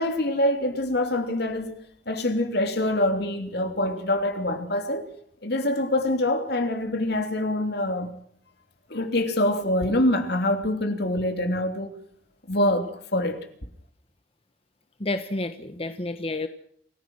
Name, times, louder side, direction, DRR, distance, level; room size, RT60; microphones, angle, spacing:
voice 1, 0.0-5.0 5.4-8.1 8.9-12.0 12.5-13.5, left 1 dB, 60° left, 3.2 m, -25 dB
voice 2, 15.0-16.5, left 2 dB, 30° left, 1.2 m, -30 dB
27.5 x 16.0 x 6.3 m
head